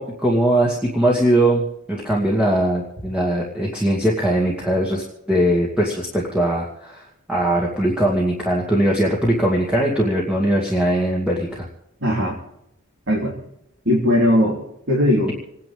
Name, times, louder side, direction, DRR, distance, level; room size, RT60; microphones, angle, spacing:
voice 1, 0.0-1.6 1.9-11.7, right 1 dB, 5° right, -4 dB, 2.3 m, -20 dB
voice 2, 12.0-12.4 13.1-13.3 13.8-14.6 14.9-15.3, left 1 dB, 55° right, -3 dB, 3.4 m, -18 dB
28.0 x 10.5 x 3.6 m, 0.82 s
head